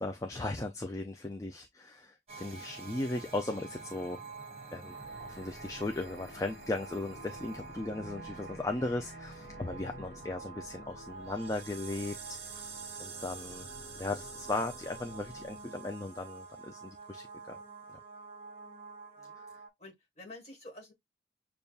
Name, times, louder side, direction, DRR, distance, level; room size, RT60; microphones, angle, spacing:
voice 1, 0.0-4.2 4.7-12.7 13.0-13.7 13.9-17.6 17.9-18.0 19.3-19.5, left 2 dB, 20° left, 0.3 m, -37 dB
sound 1, 2.3-19.7, right 4 dB, 35° right, 1.0 m, -47 dB
sound 2, 4.8-15.6, left 1 dB, 70° left, 1.1 m, -51 dB
voice 2, 19.8-20.9, left 2 dB, 35° left, 1.6 m, -50 dB
6.7 x 2.3 x 2.3 m
head